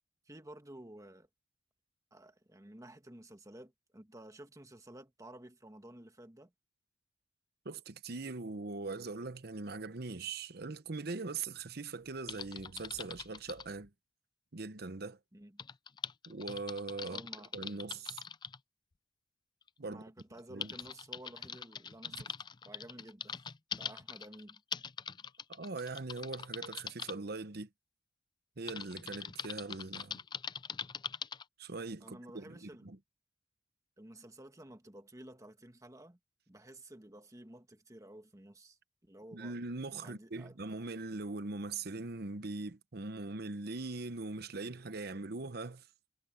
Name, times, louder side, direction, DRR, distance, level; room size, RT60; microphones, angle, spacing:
voice 1, 0.2-1.3 2.1-6.5 15.3-15.6 17.0-17.5 19.8-22.3 22.6-23.5 23.8-24.6 32.0-32.9 34.0-36.2 36.5-39.6 39.9-40.6, right 1 dB, 15° right, 1.5 m, -53 dB
voice 2, 7.6-13.9 14.5-15.2 16.3-17.2 17.5-18.2 19.8-20.0 20.5-20.7 22.1-22.2 25.5-27.7 28.6-30.2 31.6-33.0 39.3-45.9, right 3 dB, 55° right, 0.9 m, -41 dB
Typing, 12.3-13.7 15.6-18.6 19.6-19.7 20.2-27.1 28.7-31.4, left 7 dB, 25° left, 0.4 m, -43 dB
head